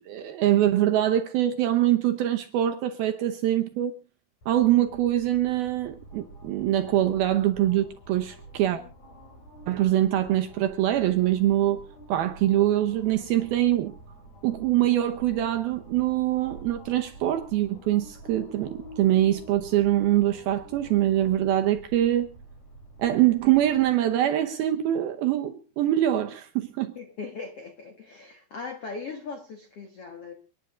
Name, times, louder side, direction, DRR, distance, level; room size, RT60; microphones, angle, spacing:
voice 1, 0.0-4.0 4.5-8.8 9.7-11.8 12.1-13.9 14.4-22.3 23.0-26.9, right 13 dB, 75° right, 2.3 m, -24 dB
sound 1, 4.4-23.9, right 1 dB, 40° left, 4.5 m, -47 dB
voice 2, 26.9-30.3, left 4 dB, 70° left, 1.4 m, -39 dB
29.5 x 10.5 x 2.5 m
omnidirectional pair, 5.2 m